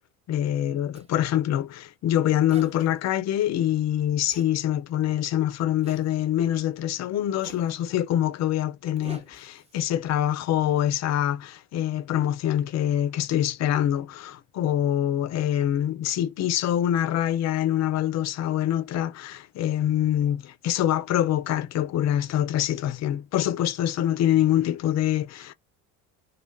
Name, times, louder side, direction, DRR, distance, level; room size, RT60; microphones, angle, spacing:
voice 1, 0.3-25.5, left 11 dB, 40° left, 0.4 m, -25 dB
Zipper (clothing), 0.9-1.1 2.5-2.9 4.3-4.5 5.8-6.1 7.4-7.7 9.0-9.8, right 2 dB, 15° right, 0.6 m, -46 dB
2.2 x 2.1 x 3.3 m
hypercardioid pair, 65°, 43 cm